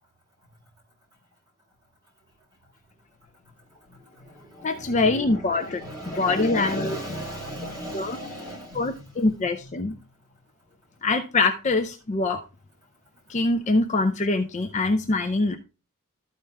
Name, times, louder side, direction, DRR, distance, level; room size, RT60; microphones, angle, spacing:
voice 1, 3.9-9.7, equal, 20° right, 4.1 m, -37 dB
voice 2, 4.6-5.8 6.1-7.0 7.9-8.2 8.7-9.9 11.0-12.4 13.3-15.6, left 3 dB, 30° left, 0.5 m, -24 dB
12.5 x 4.4 x 3.4 m
head